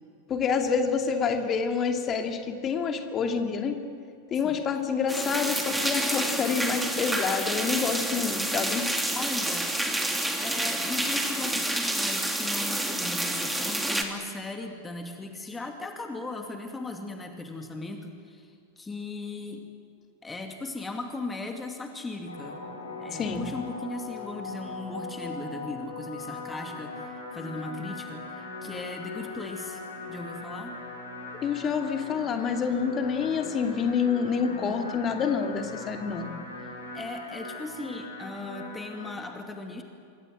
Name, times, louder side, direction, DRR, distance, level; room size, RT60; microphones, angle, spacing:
voice 1, 0.3-3.8 4.3-8.9 23.1-23.5 31.4-36.3, left 6 dB, 25° left, 4 dB, 2.6 m, -27 dB
sound 1, 5.1-14.0, right 1 dB, 5° right, 2.9 m, -29 dB
voice 2, 9.1-9.7 10.4-19.6 20.2-22.6 23.0-29.8 30.1-30.8 36.6-39.8, left 2 dB, 10° left, 4 dB, 2.4 m, -38 dB
sound 2, 22.3-39.1, left 3 dB, 75° left, 5.6 m, -40 dB
26.5 x 23.5 x 7.8 m, 2.4 s
figure-of-eight pair, 90°, 0 cm